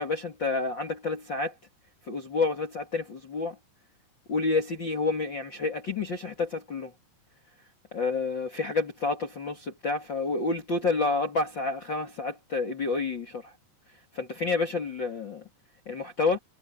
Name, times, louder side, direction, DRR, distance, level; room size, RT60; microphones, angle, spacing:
voice 1, 0.0-1.5 2.1-3.6 4.3-6.9 7.9-13.5 14.1-15.4 15.9-16.4, left 3 dB, 35° left, 2.2 m, -29 dB
omnidirectional pair, 4.7 m